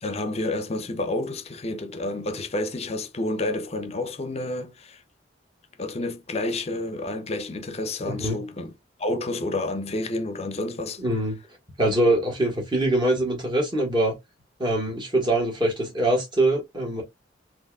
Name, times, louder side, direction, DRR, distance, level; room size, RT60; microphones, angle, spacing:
voice 1, 0.0-5.0 5.8-8.7 9.0-11.0, left 2 dB, 35° left, 0.6 m, -29 dB
voice 2, 8.0-8.4 11.0-11.4 11.8-14.1 14.6-17.0, right 1 dB, 25° right, 1.7 m, -23 dB
4.3 x 3.0 x 2.4 m
head